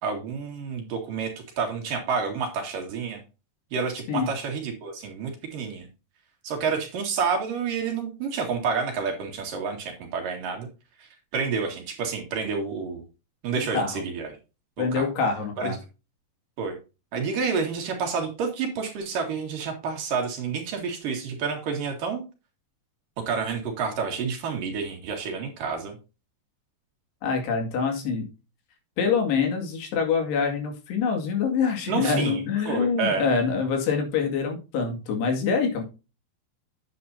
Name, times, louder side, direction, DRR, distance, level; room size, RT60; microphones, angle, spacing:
voice 1, 0.0-3.2 3.7-5.9 6.4-10.7 11.0-13.0 13.4-14.3 14.8-15.1 15.6-15.8 16.6-16.8 17.1-22.2 23.2-26.0 31.9-33.2, right 5 dB, 60° right, 2 dB, 3.3 m, -29 dB
voice 2, 13.7-14.0 14.8-15.8 27.2-28.3 29.0-35.8, left 5 dB, 80° left, 3 dB, 4.3 m, -25 dB
9.8 x 8.5 x 2.7 m, 0.30 s
omnidirectional pair, 4.8 m